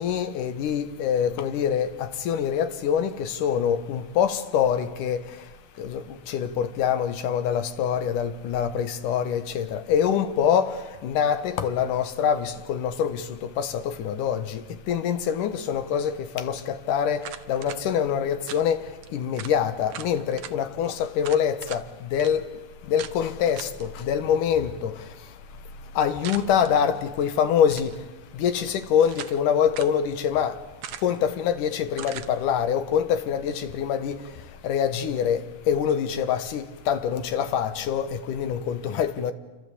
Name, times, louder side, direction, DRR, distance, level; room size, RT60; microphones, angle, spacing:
voice 1, 0.0-1.9 2.3-5.2 5.8-6.0 6.3-10.7 11.0-13.2 13.6-14.4 14.9-16.1 16.4-16.6 16.9-17.2 17.5-18.8 19.1-21.8 22.1-22.4 22.9-23.7 24.1-24.9 26.0-27.9 28.4-30.5 31.0-34.2 34.6-35.4 35.7-39.3, left 8 dB, 75° left, 2.7 m, -24 dB
sound 1, 17.2-17.8 18.5-18.7 19.0-19.1 19.4-19.6 19.9-20.5 21.2-21.8 22.2-22.3 23.0-23.2 23.6-23.8 26.2-26.7 27.6-28.0 28.7-29.4 29.7-30.0 30.8-31.2 32.0-32.3, right 10 dB, 65° right, 1.7 m, -39 dB
28.0 x 25.0 x 8.5 m
omnidirectional pair, 3.9 m